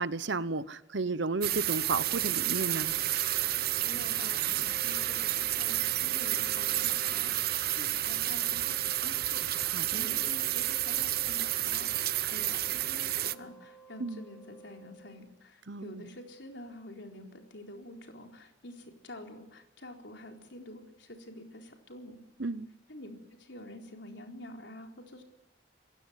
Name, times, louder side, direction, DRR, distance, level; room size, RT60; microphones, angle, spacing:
voice 1, 0.0-2.9 9.7-10.1 14.0-14.2 15.7-16.1 22.4-22.7, right 3 dB, 70° right, 1.0 m, -33 dB
sound 1, 1.4-13.3, right 14 dB, 50° right, 0.7 m, -30 dB
Wind instrument woodwind instrument, 1.8-15.2, right 3 dB, 10° left, 5.1 m, -54 dB
voice 2, 3.8-22.2 22.9-25.2, left 1 dB, 65° left, 4.1 m, -47 dB
27.0 x 16.5 x 9.3 m
head